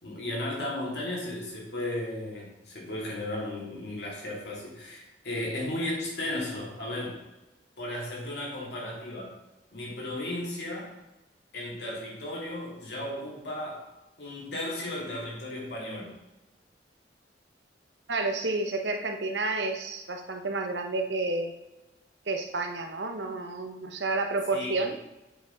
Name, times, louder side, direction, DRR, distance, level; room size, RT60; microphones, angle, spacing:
voice 1, 0.0-7.2 7.8-9.4 9.7-11.0 11.5-13.9 14.2-16.1 24.5-24.7, left 1 dB, 65° left, -4 dB, 2.7 m, -35 dB
voice 2, 18.1-21.5 22.3-24.9, right 3 dB, 80° right, 5 dB, 0.9 m, -30 dB
8.0 x 5.3 x 3.9 m, 0.99 s
head